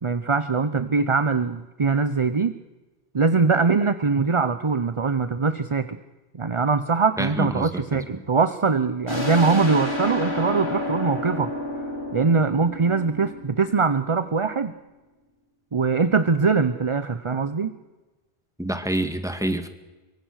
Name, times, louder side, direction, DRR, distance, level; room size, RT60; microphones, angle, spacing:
voice 1, 0.0-2.5 3.1-6.0 6.3-11.5 12.1-14.7 15.7-17.7, right 4 dB, 35° right, 12 dB, 0.8 m, -22 dB
voice 2, 7.2-8.0 18.6-19.7, right 1 dB, 5° right, 8 dB, 1.7 m, -27 dB
sound 1, 9.1-14.4, left 1 dB, 50° left, 6.0 m, -30 dB
24.0 x 23.5 x 6.5 m, 1.1 s
omnidirectional pair, 1.0 m